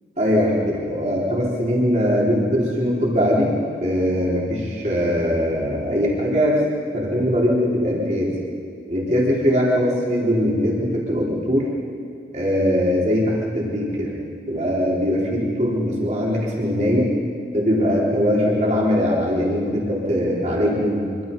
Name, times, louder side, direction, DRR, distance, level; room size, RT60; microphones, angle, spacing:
voice 1, 0.2-3.5 3.8-6.6 6.9-8.3 8.9-11.7 12.3-14.1 14.5-17.1 17.5-21.0, equal, 40° right, -5 dB, 4.1 m, -21 dB
25.5 x 24.0 x 5.5 m, 2.3 s
head